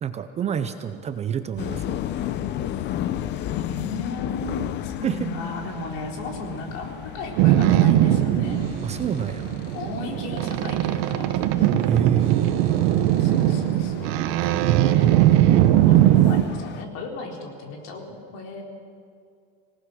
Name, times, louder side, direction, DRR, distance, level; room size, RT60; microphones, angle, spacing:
voice 1, 0.0-2.0 5.0-5.3 8.8-9.5 11.9-12.4, right 8 dB, 20° right, 9 dB, 0.6 m, -27 dB
sound 1, 1.6-16.8, left 11 dB, 35° left, 0.7 m, -34 dB
voice 2, 3.5-8.6 9.7-11.3 13.2-15.1 15.8-18.0 18.3-18.6, left 2 dB, 55° left, 1 dB, 3.9 m, -36 dB
Boat Water vehicle, 7.4-16.4, right 12 dB, 75° right, 1.0 m, -20 dB
25.5 x 18.0 x 6.3 m, 2.3 s
cardioid pair, 165°, 30 cm